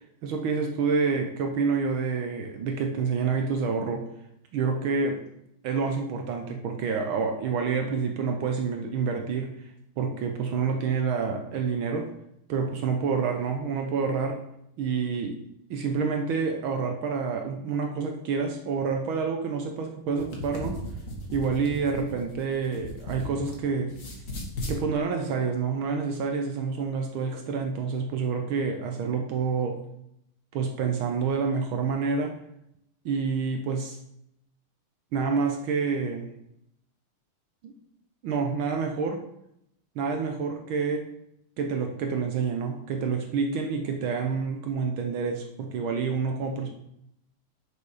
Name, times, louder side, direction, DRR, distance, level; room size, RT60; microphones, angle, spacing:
voice 1, 0.2-4.0 4.5-5.2 5.6-9.5 10.0-12.1 12.5-14.4 14.8-15.4 15.7-20.8 21.3-23.9 24.7-29.8 30.5-32.3 33.0-34.0 35.1-36.3 37.6-37.7 38.2-39.2 39.9-41.0 41.6-46.7, right 5 dB, 70° right, 3 dB, 1.6 m, -28 dB
sound 1, 20.0-23.6 23.9-24.8, left 1 dB, 40° left, 1.6 m, -36 dB
6.8 x 5.3 x 4.8 m, 0.78 s
omnidirectional pair, 2.4 m